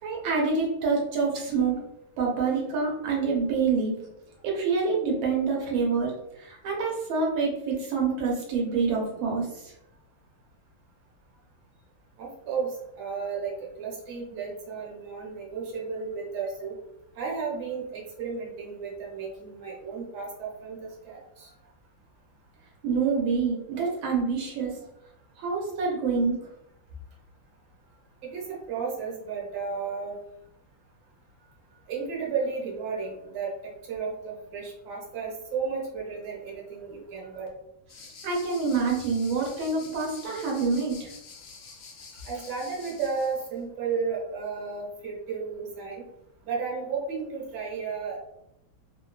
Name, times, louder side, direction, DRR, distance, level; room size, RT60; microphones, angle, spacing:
voice 1, 0.0-1.8 2.2-3.9 4.4-9.7 22.8-24.8 25.4-26.4 38.2-41.1, right 4 dB, 85° right, -2 dB, 1.5 m, -27 dB
voice 2, 12.2-16.7 17.1-21.5 28.2-30.2 31.9-37.5 42.2-46.0 46.4-48.2, right 5 dB, 65° right, -3 dB, 1.3 m, -33 dB
sound 1, 37.9-43.5, left 4 dB, 75° left, 1.0 m, -48 dB
3.4 x 2.2 x 2.3 m, 0.82 s
omnidirectional pair, 2.1 m